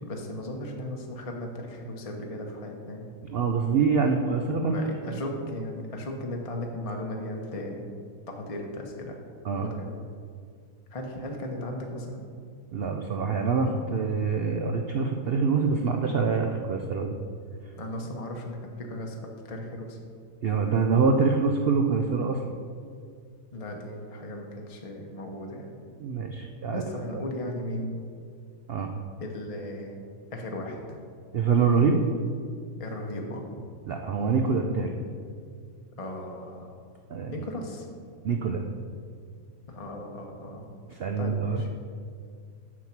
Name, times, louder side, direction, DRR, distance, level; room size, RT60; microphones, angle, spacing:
voice 1, 0.0-3.1 4.7-7.9 8.3-9.2 9.6-9.9 10.9-12.2 17.7-19.2 19.5-20.0 23.5-25.8 26.7-28.0 29.2-30.0 30.3-31.0 32.8-33.6 36.0-36.7 37.3-37.9 39.7-40.7 41.2-41.7, left 1 dB, 30° left, 1 dB, 0.7 m, -36 dB
voice 2, 3.2-5.2 9.4-9.7 12.7-17.2 20.4-22.4 26.0-26.8 27.1-27.2 28.7-28.9 31.3-32.0 33.9-35.0 37.1-37.3 38.2-38.7 40.9-41.6, right 5 dB, 90° right, 3 dB, 0.5 m, -25 dB
7.3 x 6.3 x 5.9 m, 2.2 s
omnidirectional pair, 1.7 m